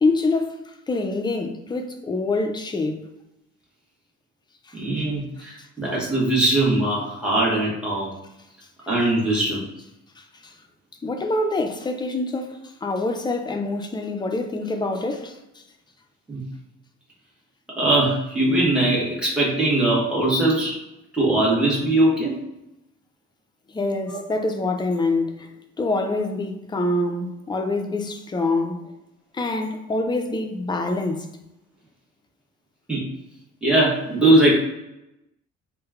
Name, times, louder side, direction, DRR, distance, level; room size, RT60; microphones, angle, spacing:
voice 1, 0.0-3.1 4.7-4.8 5.6-5.7 10.2-10.5 11.0-15.6 23.7-25.5 25.8-28.9 29.3-31.3, left 2 dB, 15° left, 0.4 m, -26 dB
voice 2, 4.7-8.1 8.9-9.6 16.3-16.4 17.8-20.8 21.1-22.3 24.1-24.2 32.9-33.0 33.6-34.5, right 1 dB, 5° right, 1.2 m, -20 dB
3.0 x 2.1 x 2.3 m
cardioid pair, 90°, 30 cm